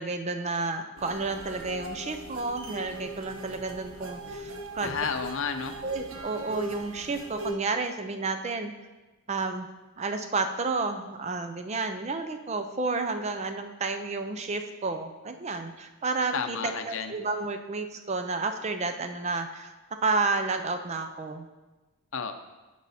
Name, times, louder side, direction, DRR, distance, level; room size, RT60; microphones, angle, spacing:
voice 1, 0.0-4.9 5.8-8.7 9.3-9.7 10.0-19.7 20.0-21.5, right 3 dB, 30° right, 7 dB, 0.4 m, -31 dB
sound 1, 1.0-7.5, right 1 dB, 70° right, 1.1 m, -40 dB
voice 2, 4.8-5.7 16.3-17.1 22.1-22.3, left 5 dB, 65° left, 7 dB, 0.6 m, -31 dB
11.0 x 4.8 x 4.2 m, 1.1 s
head